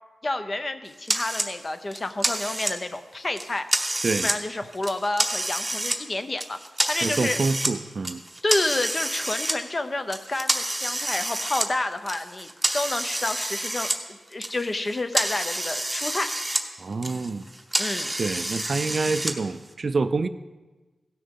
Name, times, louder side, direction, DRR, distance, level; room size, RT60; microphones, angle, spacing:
voice 1, 0.2-3.7 4.2-6.6 6.9-7.4 8.4-12.5 12.7-16.3 17.8-18.1, left 2 dB, 30° left, 9 dB, 0.6 m, -29 dB
sound 1, 1.1-1.5 1.9-3.0 3.4-4.4 4.7-6.0 6.4-7.7 8.0-9.5 10.1-14.0 14.3-16.6 16.9-19.3, right 1 dB, 10° right, 0.9 m, -28 dB
voice 2, 7.0-8.2 16.8-17.8 18.2-20.3, right 4 dB, 50° right, 12 dB, 0.4 m, -27 dB
16.5 x 6.5 x 3.7 m, 1.2 s
wide cardioid pair, 115°, 0 cm